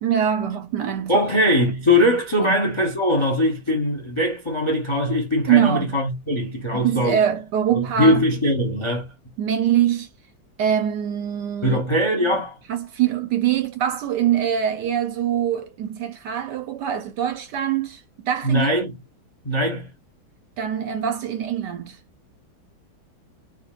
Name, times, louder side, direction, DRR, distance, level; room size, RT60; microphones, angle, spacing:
voice 1, 0.0-1.3 2.4-2.6 5.5-6.0 6.7-8.2 9.4-10.1 10.6-11.8 12.2-12.4 12.7-18.7 20.6-22.0, right 10 dB, 70° right, 1.0 m, -23 dB
voice 2, 1.1-7.2 7.7-9.1 11.6-12.5 18.4-18.9 19.4-19.9, left 1 dB, 40° left, 0.4 m, -21 dB
3.9 x 3.7 x 2.4 m
omnidirectional pair, 2.1 m